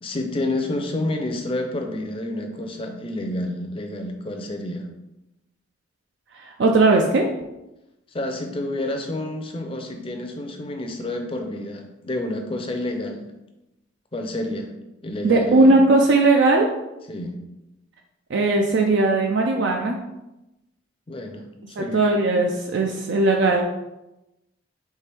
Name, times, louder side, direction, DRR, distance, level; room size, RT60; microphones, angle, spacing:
voice 1, 0.0-4.9 8.1-13.3 14.1-14.7 15.0-15.8 17.1-17.4 21.1-22.0, left 1 dB, 30° left, 4 dB, 0.5 m, -29 dB
voice 2, 6.4-7.2 15.2-16.7 18.3-20.0 21.8-23.6, right 2 dB, 65° right, 2 dB, 0.4 m, -18 dB
4.5 x 3.3 x 3.4 m, 0.94 s
head